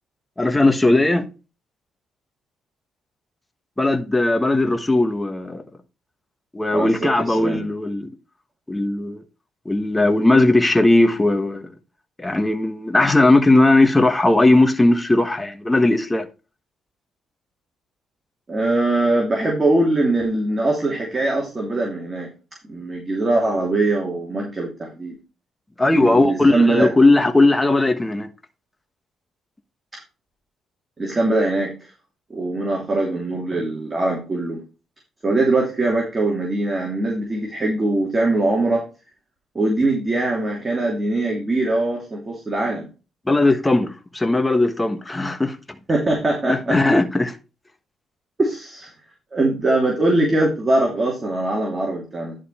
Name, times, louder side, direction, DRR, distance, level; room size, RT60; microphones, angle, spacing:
voice 1, 0.4-1.2 3.8-5.6 6.5-8.1 8.7-9.2 9.6-11.7 12.2-16.3 25.8-28.3 43.3-45.6 46.5-47.3, left 2 dB, 15° left, 1.2 m, -18 dB
voice 2, 6.7-7.6 18.5-22.3 22.7-25.2 25.9-26.9 31.0-31.7 32.3-34.6 35.2-38.8 39.5-42.8 45.9-46.8 48.4-48.9 49.3-52.4, right 2 dB, 25° right, 2.9 m, -22 dB
11.0 x 5.1 x 4.3 m
cardioid pair, 90°, 0 cm